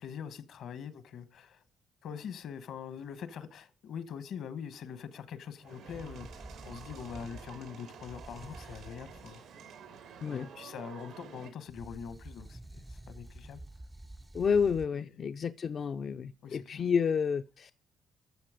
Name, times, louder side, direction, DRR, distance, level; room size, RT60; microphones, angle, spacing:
voice 1, 0.0-1.6 2.0-9.4 10.3-13.6 15.0-15.1 16.4-16.8, left 7 dB, 75° left, 1.3 m, -43 dB
sound 1, 5.6-11.5, right 7 dB, 85° right, 2.5 m, -50 dB
sound 2, 5.9-9.4 11.7-14.9, right 1 dB, 10° right, 0.4 m, -49 dB
voice 2, 14.3-17.9, left 6 dB, 50° left, 0.5 m, -30 dB
13.0 x 7.0 x 5.0 m
cardioid pair, 90°, 0 cm